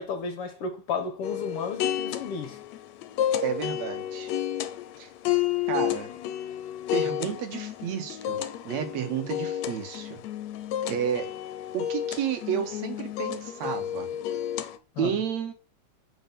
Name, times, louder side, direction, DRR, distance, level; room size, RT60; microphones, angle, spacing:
voice 1, 0.0-2.6 15.0-15.1, left 5 dB, 60° left, 1.7 m, -33 dB
sound 1, 1.2-14.8, left 11 dB, 80° left, 2.0 m, -31 dB
voice 2, 3.4-4.3 5.0-5.1 5.7-6.1 6.9-10.2 10.9-11.3 11.7-14.1 15.0-15.5, right 8 dB, 70° right, 2.4 m, -31 dB
8.9 x 4.6 x 6.8 m
omnidirectional pair, 3.3 m